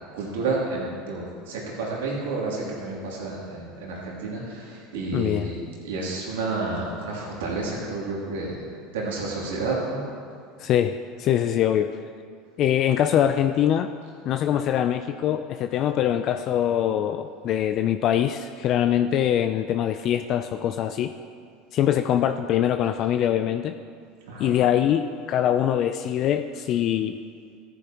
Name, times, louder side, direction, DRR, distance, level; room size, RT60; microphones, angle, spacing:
voice 1, 0.1-8.6 8.9-10.0 24.3-24.5, right 3 dB, 85° right, -4 dB, 2.7 m, -30 dB
voice 2, 5.1-5.5 10.6-12.0 12.6-13.9 14.2-21.1 21.7-23.8 24.4-27.2, left 10 dB, 50° left, 8 dB, 0.4 m, -23 dB
14.0 x 9.9 x 3.0 m, 2.2 s
hypercardioid pair, 95°, 0 cm